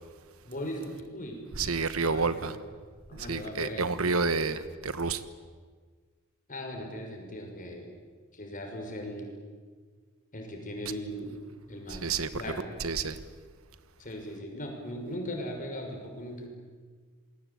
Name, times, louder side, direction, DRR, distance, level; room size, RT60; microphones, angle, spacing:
voice 1, 0.4-1.4 2.1-2.6 3.1-3.8 6.5-7.9 8.3-9.3 10.3-11.3 11.7-12.7 14.0-16.5, equal, 40° left, 6.1 m, -38 dB
voice 2, 1.5-2.6 3.2-5.2 11.9-12.4 12.8-13.2, right 4 dB, 80° right, 1.4 m, -29 dB
27.5 x 21.0 x 8.7 m
head